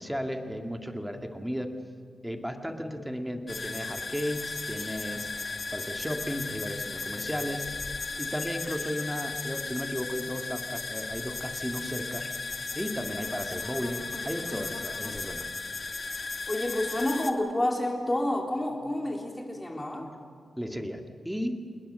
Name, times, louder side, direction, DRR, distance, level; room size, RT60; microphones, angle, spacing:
voice 1, 0.0-1.7 2.2-15.5 20.6-21.5, equal, 5° right, 5 dB, 2.0 m, -35 dB
sound 1, 3.5-17.3, left 4 dB, 45° left, 1.6 m, -36 dB
voice 2, 16.5-20.1, left 1 dB, 15° left, 1 dB, 3.9 m, -29 dB
28.5 x 20.0 x 6.7 m, 2.1 s
wide cardioid pair, 100°, 0 cm